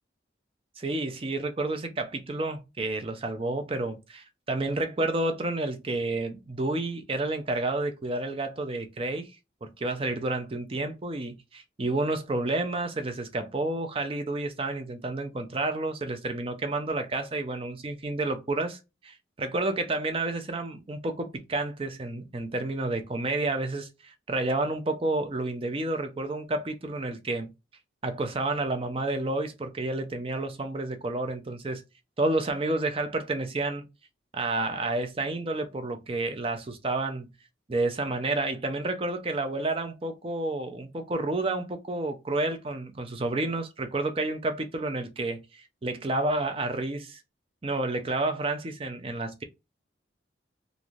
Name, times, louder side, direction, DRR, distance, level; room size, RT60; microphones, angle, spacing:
voice 1, 0.8-9.3 9.6-27.5 28.0-31.8 32.2-33.9 34.3-37.3 37.7-47.2 47.6-49.4, right 2 dB, 30° right, 0.5 m, -30 dB
3.2 x 2.6 x 2.4 m
head